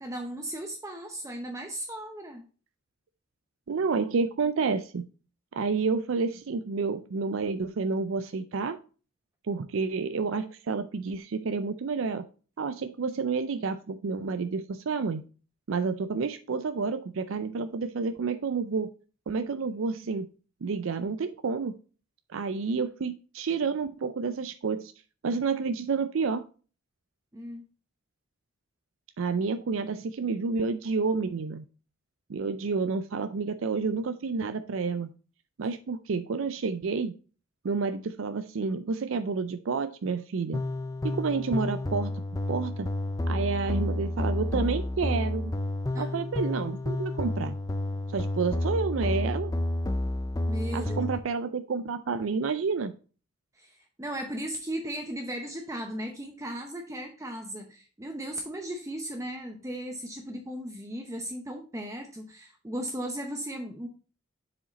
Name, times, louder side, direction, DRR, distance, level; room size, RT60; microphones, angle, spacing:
voice 1, 0.0-2.4 27.3-27.6 45.9-46.2 50.5-51.0 53.5-63.9, right 1 dB, 15° right, 3 dB, 0.7 m, -36 dB
voice 2, 3.7-5.1 5.5-8.8 9.4-12.3 12.6-15.2 15.7-18.9 19.3-20.3 20.6-21.7 22.3-24.9 25.2-26.4 29.2-31.7 32.3-35.1 35.6-37.1 37.6-40.6 41.0-42.2 42.5-42.9 43.3-45.5 46.0-47.6 48.1-49.5 50.7-52.9, right 4 dB, 70° right, 10 dB, 0.4 m, -29 dB
sound 1, 40.5-51.2, left 1 dB, 15° left, 0.4 m, -30 dB
7.0 x 4.9 x 4.0 m, 0.36 s
head